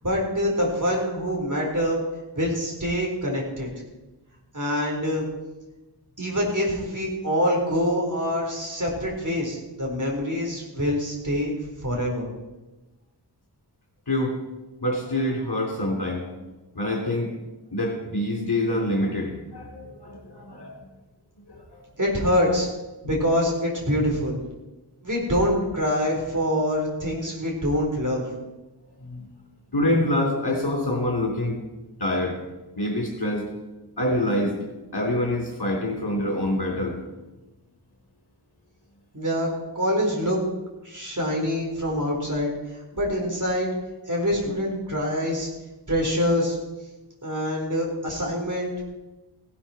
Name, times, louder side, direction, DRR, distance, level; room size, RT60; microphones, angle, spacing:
voice 1, 0.0-2.0 2.3-3.7 4.5-5.3 6.2-12.3 22.0-22.7 23.0-24.4 25.0-28.2 39.1-39.5 39.7-40.4 40.8-43.7 44.1-45.5 45.9-46.6 47.2-48.7, equal, 45° right, -2 dB, 4.4 m, -25 dB
voice 2, 14.1-14.4 14.8-16.3 16.8-17.4 17.7-20.8 21.5-21.8 23.0-23.1 29.0-29.3 29.7-31.6 32.0-32.4 32.8-33.4 34.0-34.6 34.9-37.0, left 1 dB, 60° left, 0 dB, 3.6 m, -26 dB
17.0 x 11.5 x 4.5 m, 1.1 s
wide cardioid pair, 50°, 43 cm